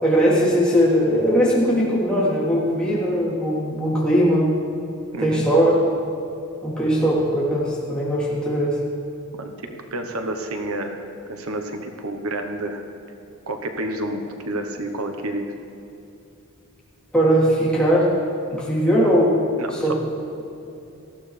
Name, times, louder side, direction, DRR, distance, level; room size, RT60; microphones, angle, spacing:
voice 1, 0.0-4.5 5.2-5.8 6.6-8.8 17.1-18.1 18.5-19.4 19.7-20.0, equal, 5° left, -8 dB, 3.5 m, -19 dB
voice 2, 5.1-5.4 9.4-9.5 9.9-12.8 13.5-15.5 19.6-19.9, right 1 dB, 75° right, 5 dB, 1.1 m, -29 dB
19.0 x 14.5 x 3.4 m, 2.8 s
head